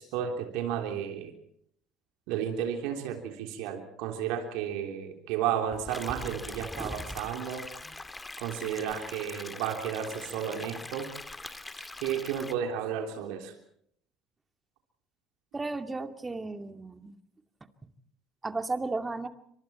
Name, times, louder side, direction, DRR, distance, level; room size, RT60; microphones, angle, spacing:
voice 1, 0.0-1.3 2.3-7.7 8.4-11.1 11.8-13.5, right 9 dB, 70° right, 4 dB, 3.4 m, -33 dB
sound 1, 5.7-9.3 9.5-10.3 10.9-11.5, equal, ahead, 2.9 m, -44 dB
sound 2, 5.9-12.5, left 2 dB, 15° left, 2.1 m, -43 dB
voice 2, 15.5-17.2 18.4-19.3, right 3 dB, 20° right, 7 dB, 2.4 m, -34 dB
28.5 x 25.5 x 4.4 m, 0.69 s
hypercardioid pair, 65°, 0 cm